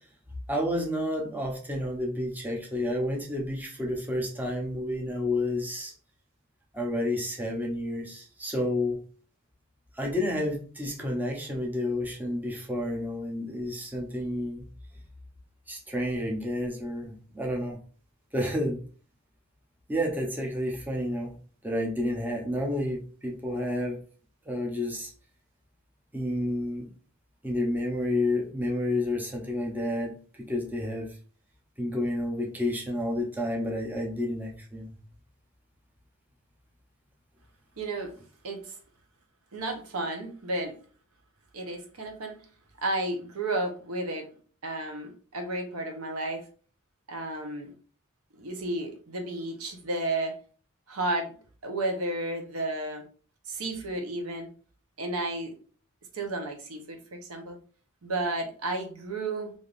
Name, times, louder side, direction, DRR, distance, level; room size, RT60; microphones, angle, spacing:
voice 1, 0.5-5.9 6.7-9.0 9.9-14.7 15.7-17.8 18.3-18.8 19.9-21.3 21.6-24.0 24.5-25.1 26.1-26.9 27.4-31.2 31.8-35.0, left 1 dB, 10° right, 0 dB, 0.6 m, -30 dB
voice 2, 37.8-38.1 38.4-38.8 39.5-40.8 41.5-42.4 42.8-44.3 44.6-46.5 47.1-47.7 48.3-50.4 50.9-51.3 51.6-53.0 53.5-54.5 55.0-55.5 56.1-57.6 58.0-59.5, right 2 dB, 85° right, 4 dB, 0.8 m, -32 dB
3.4 x 2.6 x 2.4 m, 0.41 s
head